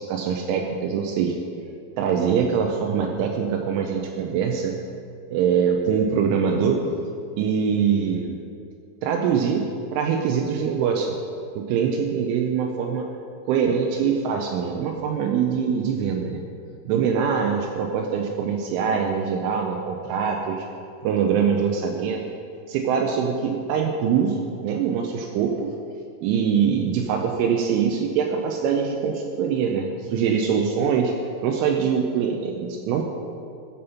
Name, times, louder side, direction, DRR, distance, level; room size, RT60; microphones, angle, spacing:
voice 1, 0.0-1.4 2.0-4.7 5.3-6.8 7.4-8.4 9.0-11.2 11.6-13.1 13.4-16.4 16.9-20.7 21.0-22.2 22.7-25.7 26.2-31.1 31.4-33.0, right 7 dB, 80° right, 2 dB, 3.0 m, -23 dB
14.5 x 5.4 x 5.6 m, 2.4 s
omnidirectional pair, 5.7 m